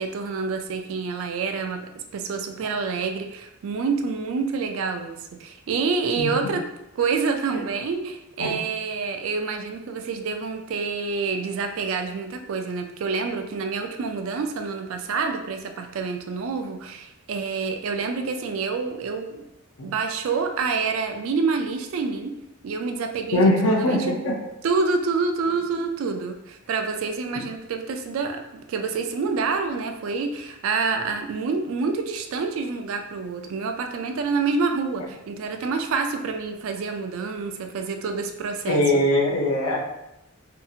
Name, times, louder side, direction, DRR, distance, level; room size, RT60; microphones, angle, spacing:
voice 1, 0.0-6.6 7.0-19.4 19.8-22.4 22.6-24.1 24.6-39.0, right 4 dB, 65° right, 5 dB, 0.3 m, -27 dB
voice 2, 6.2-6.5 8.4-8.5 19.8-19.9 23.3-24.3 38.7-39.8, left 1 dB, 75° left, 0 dB, 0.6 m, -21 dB
2.7 x 2.4 x 2.6 m, 0.87 s
head